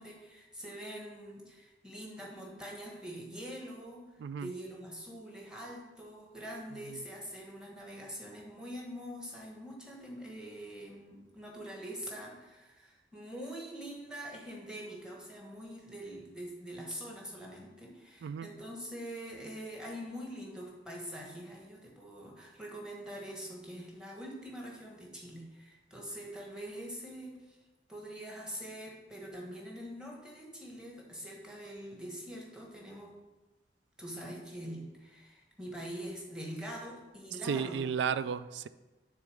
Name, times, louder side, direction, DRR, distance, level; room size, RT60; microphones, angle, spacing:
voice 1, 0.0-4.0 4.4-27.6 27.9-33.1 34.0-37.8, equal, 5° right, -2 dB, 1.2 m, -44 dB
voice 2, 4.2-4.5 6.9-7.0 18.2-18.5 37.4-38.7, right 7 dB, 75° right, 15 dB, 0.3 m, -33 dB
6.6 x 3.8 x 6.3 m, 1.1 s
head